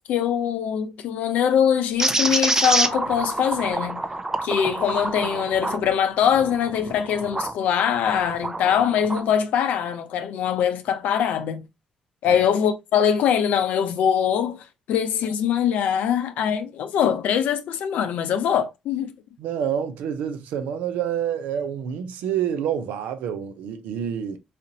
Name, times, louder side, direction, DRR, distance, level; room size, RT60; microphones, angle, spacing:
voice 1, 0.0-4.0 4.4-11.6 12.2-19.1, left 8 dB, 75° left, 0.5 m, -23 dB
sound 1, 2.0-7.6 8.1-9.3, right 2 dB, 20° right, 0.5 m, -26 dB
voice 2, 19.4-24.4, right 9 dB, 80° right, 0.6 m, -28 dB
4.1 x 2.6 x 2.8 m
supercardioid pair, 55°, 3 cm